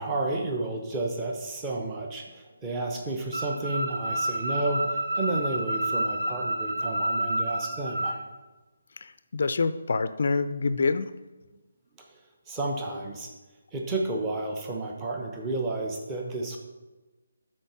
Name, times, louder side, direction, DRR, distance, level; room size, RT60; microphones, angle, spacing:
voice 1, 0.0-8.2 12.1-12.2 12.5-13.3 13.7-16.6, right 2 dB, 15° right, 1 dB, 0.9 m, -31 dB
sound 1, 3.3-8.2, right 1 dB, 55° right, 1.3 m, -29 dB
voice 2, 9.0-11.1, left 4 dB, 50° left, 13 dB, 0.4 m, -26 dB
12.0 x 4.4 x 4.5 m, 1.2 s
figure-of-eight pair, 145°, 0 cm